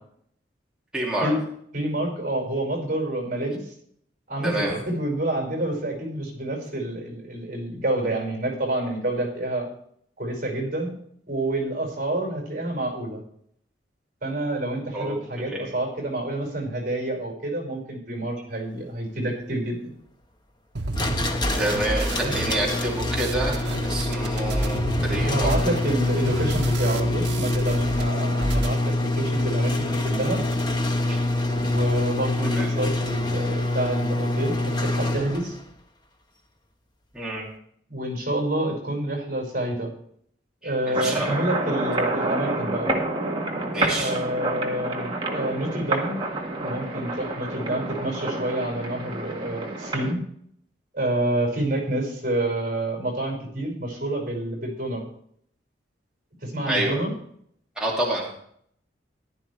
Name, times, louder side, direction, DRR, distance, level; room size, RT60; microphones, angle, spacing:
voice 1, 0.9-1.3 4.4-4.7 14.9-15.2 15.5-15.7 21.6-25.7 31.1-31.2 32.5-32.7 37.1-37.4 40.6-41.6 43.7-44.1 56.7-57.0 57.8-58.4, right 1 dB, 5° right, -5 dB, 2.4 m, -28 dB
voice 2, 1.7-3.7 4.3-9.7 10.2-10.9 11.3-13.2 14.2-19.9 25.3-30.4 31.5-35.6 37.9-39.9 40.6-42.9 43.9-46.2 46.6-50.2 50.9-55.1 56.4-57.1, right 1 dB, 45° right, 1 dB, 5.3 m, -28 dB
sound 1, 20.8-28.0 28.3-28.8, right 1 dB, 65° right, 1.2 m, -30 dB
sound 2, 20.9-35.6, left 1 dB, 25° left, 1.2 m, -26 dB
sound 3, 40.9-50.1, right 2 dB, 25° right, 1.7 m, -28 dB
15.0 x 11.5 x 3.3 m, 0.66 s
head